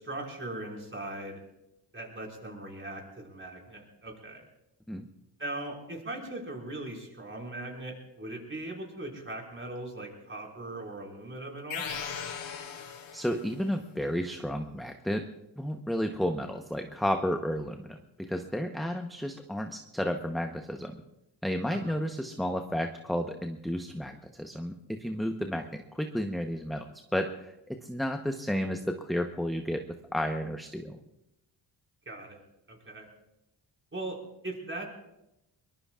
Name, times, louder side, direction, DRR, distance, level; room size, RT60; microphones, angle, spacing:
voice 1, 0.0-1.4 1.9-4.4 5.4-11.8 21.7-22.0 32.1-32.4 32.7-33.1 33.9-34.2 34.4-34.9, right 2 dB, 25° right, 0 dB, 5.3 m, -39 dB
sound 1, 11.7-13.6, left 7 dB, 80° left, 2.0 m, -38 dB
voice 2, 13.1-15.3 15.6-21.0 21.4-26.9 27.1-29.8 30.1-31.0, equal, ahead, 5 dB, 1.0 m, -32 dB
23.5 x 21.5 x 2.5 m, 0.89 s
cardioid pair, 75°, 46 cm